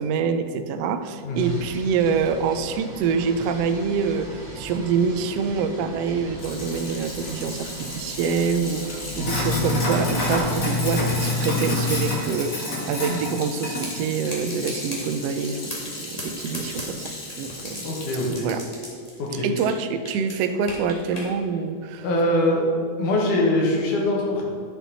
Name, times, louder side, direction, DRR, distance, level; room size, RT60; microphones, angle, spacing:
voice 1, 0.0-17.1 17.4-17.9 18.3-18.6 19.4-22.0, right 6 dB, 85° right, 8 dB, 1.4 m, -26 dB
sound 1, 1.3-10.9, right 1 dB, 30° right, 1.5 m, -39 dB
Sink (filling or washing), 6.4-18.3, left 2 dB, 35° left, 1.4 m, -29 dB
sound 2, 13.8-14.0 14.3-15.0 15.4-15.9 16.2-17.8 18.1-19.8 20.1-21.3, left 1 dB, 20° left, 1.2 m, -35 dB
voice 2, 17.8-18.5 19.2-19.5 22.0-22.7 23.0-24.4, left 1 dB, 85° left, -2 dB, 3.0 m, -22 dB
10.5 x 6.1 x 4.0 m, 2.1 s
omnidirectional pair, 3.5 m